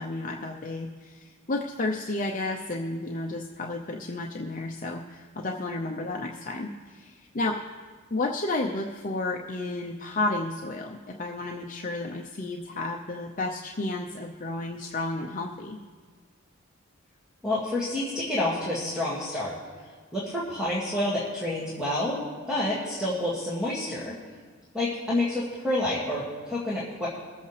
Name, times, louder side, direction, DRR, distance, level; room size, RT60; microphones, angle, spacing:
voice 1, 0.0-7.6 8.1-15.8, left 2 dB, 40° left, 1 dB, 0.7 m, -32 dB
voice 2, 17.4-19.5 20.1-22.2 22.5-24.1 24.7-27.1, left 1 dB, 5° right, -8 dB, 2.1 m, -28 dB
23.0 x 8.1 x 3.3 m, 1.5 s
head